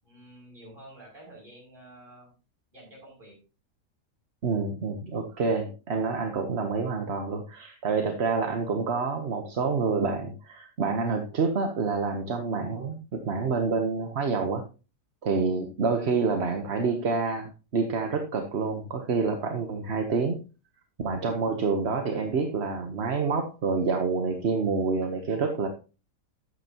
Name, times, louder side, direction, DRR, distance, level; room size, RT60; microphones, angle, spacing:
voice 1, 0.0-2.3 2.7-3.3, right 1 dB, 30° right, -3 dB, 6.9 m, -49 dB
voice 2, 4.4-14.6 15.2-20.4 21.0-25.7, right 4 dB, 45° right, 5 dB, 1.2 m, -28 dB
13.0 x 9.0 x 2.9 m, 0.32 s
omnidirectional pair, 1.7 m